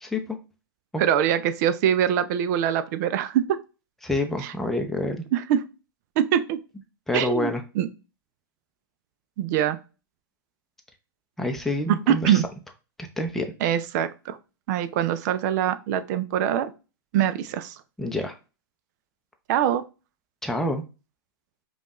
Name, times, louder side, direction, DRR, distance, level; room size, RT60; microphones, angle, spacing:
voice 1, 0.0-0.4 0.9-1.0 4.0-5.2 7.1-7.6 11.4-12.4 13.0-13.5 18.0-18.3 20.4-20.8, left 1 dB, 5° left, 4 dB, 0.6 m, -27 dB
voice 2, 1.0-3.6 4.4-4.5 5.3-5.6 6.2-6.6 7.1-7.9 9.4-9.8 12.1-12.4 13.6-14.4 14.7-16.7 17.1-17.8 19.5-19.8, right 10 dB, 50° right, 13 dB, 0.5 m, -23 dB
5.1 x 2.4 x 3.0 m, 0.31 s
hypercardioid pair, 120°, 12 cm